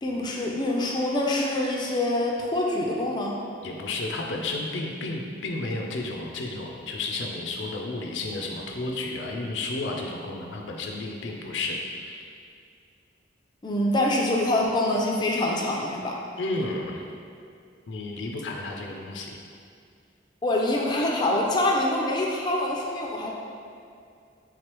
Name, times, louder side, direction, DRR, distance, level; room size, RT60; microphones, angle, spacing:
voice 1, 0.0-3.4 13.6-16.2 20.4-23.3, left 1 dB, 25° left, -2 dB, 0.4 m, -25 dB
voice 2, 3.6-12.3 16.4-17.0 17.9-19.4, left 2 dB, 90° left, 1 dB, 0.4 m, -32 dB
3.6 x 3.2 x 3.0 m, 2.4 s
head